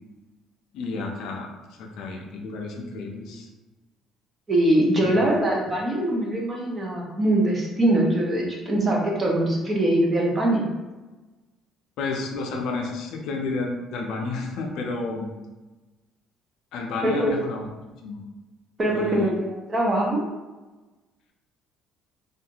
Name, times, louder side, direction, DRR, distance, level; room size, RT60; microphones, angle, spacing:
voice 1, 0.7-1.5 1.8-3.5 5.0-5.2 12.0-15.3 16.7-17.7 18.0-18.2 18.9-19.3, left 3 dB, 65° left, 1 dB, 0.4 m, -31 dB
voice 2, 4.5-10.7 17.0-17.3 18.8-20.2, right 1 dB, 25° right, -1 dB, 0.5 m, -22 dB
2.5 x 2.3 x 2.8 m, 1.2 s
cardioid pair, 155°, 0 cm